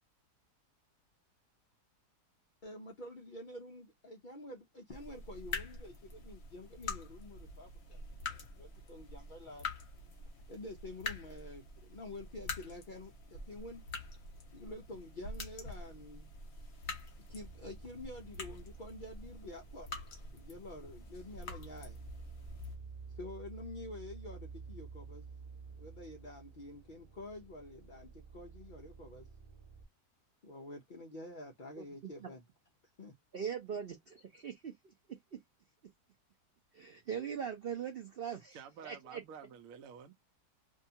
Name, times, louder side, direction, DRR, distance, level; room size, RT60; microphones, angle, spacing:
voice 1, 2.6-9.7 10.5-13.8 14.5-16.3 17.3-20.0 20.3-22.0 23.2-25.2 25.8-29.3 30.4-32.4 33.0-33.1, left 2 dB, 75° left, 0.4 m, -48 dB
sound 1, 4.9-22.8, left 3 dB, 50° left, 0.8 m, -46 dB
sound 2, 17.3-29.8, right 5 dB, 30° right, 0.7 m, -52 dB
voice 2, 31.8-32.3 33.3-34.7 36.7-38.6 38.8-39.2, right 7 dB, 90° right, 0.5 m, -41 dB
voice 3, 38.5-40.1, right 7 dB, 65° right, 0.9 m, -50 dB
2.7 x 2.3 x 2.7 m
omnidirectional pair, 1.7 m